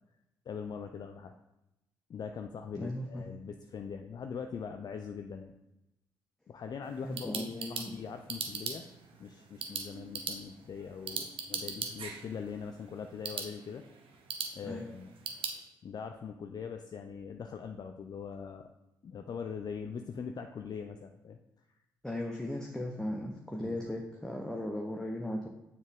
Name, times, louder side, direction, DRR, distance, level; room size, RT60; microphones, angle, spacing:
voice 1, 0.5-1.3 2.1-5.5 6.5-8.8 9.2-13.8 14.5-15.1 15.8-18.7 19.0-21.4 23.6-23.9, left 6 dB, 40° left, 6 dB, 0.4 m, -42 dB
voice 2, 2.7-3.2 7.0-7.9 14.6-14.8 22.0-25.5, left 1 dB, 5° left, 1 dB, 0.8 m, -37 dB
sound 1, 6.8-15.6, right 6 dB, 60° right, 0.8 m, -41 dB
6.9 x 4.0 x 3.6 m, 0.93 s
hypercardioid pair, 45°, 10 cm